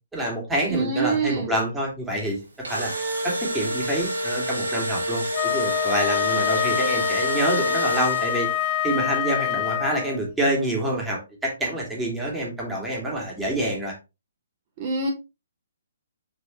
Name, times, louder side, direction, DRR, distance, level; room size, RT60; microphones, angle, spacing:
voice 1, 0.1-2.4 2.7-8.5 8.8-13.9, right 1 dB, 5° right, -3 dB, 2.8 m, -27 dB
voice 2, 0.7-1.6 14.8-15.1, right 4 dB, 35° right, -2 dB, 2.7 m, -25 dB
Engine / Drill, 2.4-8.6, right 1 dB, 85° right, 3.7 m, -28 dB
Wind instrument woodwind instrument, 5.3-10.2, left 12 dB, 35° left, 0.4 m, -26 dB
6.7 x 4.7 x 3.3 m, 0.27 s
hypercardioid pair, 150°, 0 cm